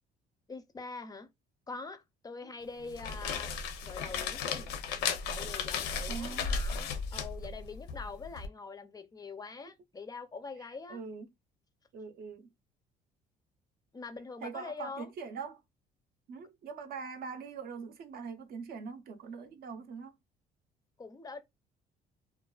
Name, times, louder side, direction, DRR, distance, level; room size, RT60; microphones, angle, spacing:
voice 1, 0.5-1.3 1.7-3.5 3.8-11.0 13.9-15.1 21.0-21.4, left 4 dB, 20° left, 0.4 m, -44 dB
sound 1, 2.8-8.5, left 5 dB, 90° left, 0.5 m, -35 dB
voice 2, 6.1-6.6 10.9-11.3 11.9-12.5 14.4-15.6 16.3-20.1, right 5 dB, 65° right, 0.6 m, -42 dB
2.4 x 2.3 x 2.2 m
cardioid pair, 110°, 17 cm